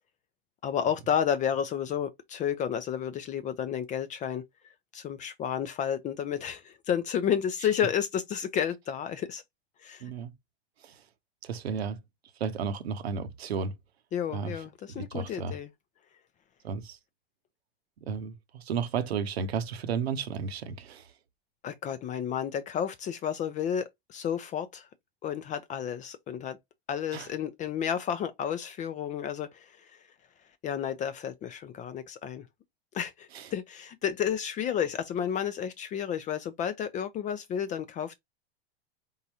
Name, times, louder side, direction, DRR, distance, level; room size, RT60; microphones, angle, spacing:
voice 1, 0.6-9.4 9.8-10.0 14.1-15.7 21.6-24.9 25.2-26.6 26.9-30.0 30.6-32.4 32.9-38.1, left 8 dB, 25° left, 0.5 m, -31 dB
voice 2, 11.4-12.0 12.4-13.7 14.3-14.5 14.9-15.6 16.6-17.0 18.0-21.0 27.1-27.3 33.3-33.5, right 6 dB, 80° right, 0.9 m, -33 dB
4.1 x 3.7 x 2.8 m
hypercardioid pair, 105°, 31 cm